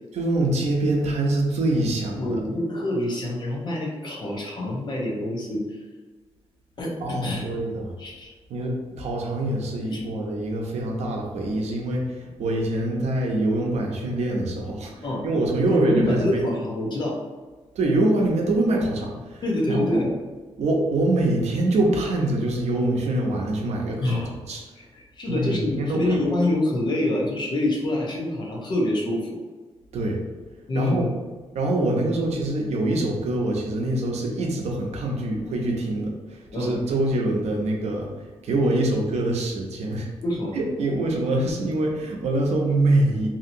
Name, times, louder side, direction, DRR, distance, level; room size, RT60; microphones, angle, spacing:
voice 1, 0.1-2.4 7.0-7.9 8.5-16.4 17.7-20.0 20.6-24.1 24.5-24.6 25.3-26.2 29.9-30.2 30.7-31.1 31.5-38.1 38.4-40.1 40.5-43.3, right 2 dB, 85° right, 0 dB, 0.6 m, -24 dB
voice 2, 2.1-5.8 6.8-7.4 8.0-8.3 9.9-10.0 15.0-15.2 15.7-17.2 19.4-20.1 24.0-24.4 24.8-29.4 30.7-31.1 36.5-36.8 40.2-40.6, left 1 dB, 45° left, -2 dB, 0.7 m, -26 dB
2.8 x 2.8 x 2.6 m, 1.3 s
wide cardioid pair, 160°, 11 cm